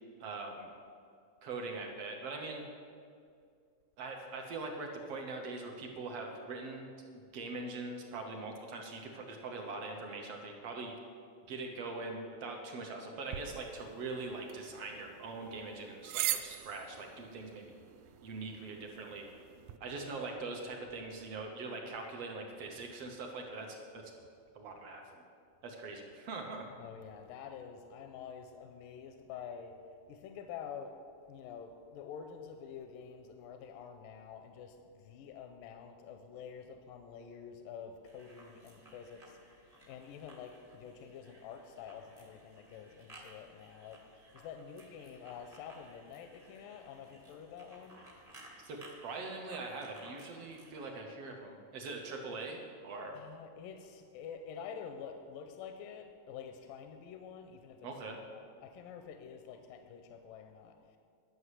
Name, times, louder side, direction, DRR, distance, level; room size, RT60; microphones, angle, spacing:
voice 1, 0.2-0.7 1.4-2.6 4.0-6.9 7.3-10.9 11.5-17.6 18.2-19.3 19.8-24.1 24.6-25.2 25.6-26.7 48.6-53.2 57.8-58.2, right 3 dB, 65° right, 2 dB, 1.6 m, -42 dB
sound 1, 13.3-19.8, right 13 dB, 85° right, 1.7 m, -42 dB
voice 2, 26.8-29.8 30.1-30.9 31.3-48.0 53.1-61.0, left 7 dB, 85° left, 6 dB, 2.3 m, -48 dB
sound 2, 38.0-50.9, right 1 dB, 25° right, 0.7 m, -58 dB
11.0 x 6.3 x 8.1 m, 2.3 s
omnidirectional pair, 3.9 m